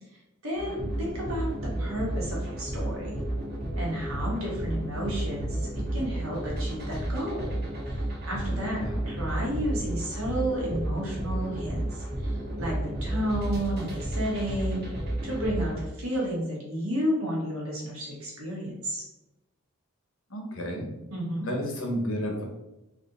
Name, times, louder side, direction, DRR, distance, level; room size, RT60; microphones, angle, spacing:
voice 1, 0.1-3.2 3.7-7.6 7.9-8.0 8.3-14.8 15.2-19.0 21.1-21.5, equal, 85° right, -4 dB, 1.5 m, -32 dB
sound 1, 0.5-15.8, right 1 dB, 50° right, 1.2 m, -32 dB
voice 2, 0.7-1.2 8.4-9.1 20.3-20.9 21.4-22.4, equal, 75° left, 1 dB, 1.0 m, -33 dB
3.3 x 2.7 x 3.9 m, 0.98 s
head